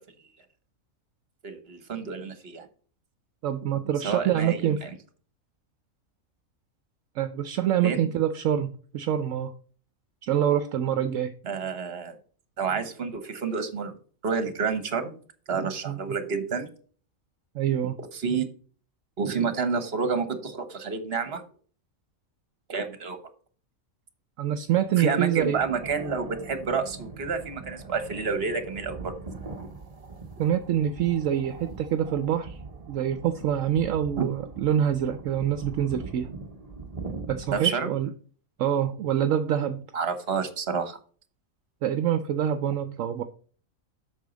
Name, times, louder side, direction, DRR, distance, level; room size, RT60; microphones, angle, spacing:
voice 1, 1.4-2.7 4.0-4.9 7.8-8.1 11.4-12.2 12.6-13.9 14.2-15.1 15.5-16.7 18.1-18.4 19.2-21.4 22.7-23.2 25.0-29.1 34.2-34.3 37.5-37.9 39.9-41.0, right 5 dB, 50° right, 9 dB, 1.4 m, -29 dB
voice 2, 3.4-4.8 7.2-9.5 10.2-11.3 15.9-16.0 17.5-17.9 24.4-25.6 30.4-32.6 32.9-36.3 37.3-38.1 38.6-39.9 41.8-43.2, right 10 dB, 70° right, 9 dB, 1.0 m, -26 dB
sound 1, 25.4-37.6, right 3 dB, 30° right, 1.0 m, -41 dB
8.3 x 6.3 x 4.0 m, 0.43 s
omnidirectional pair, 1.4 m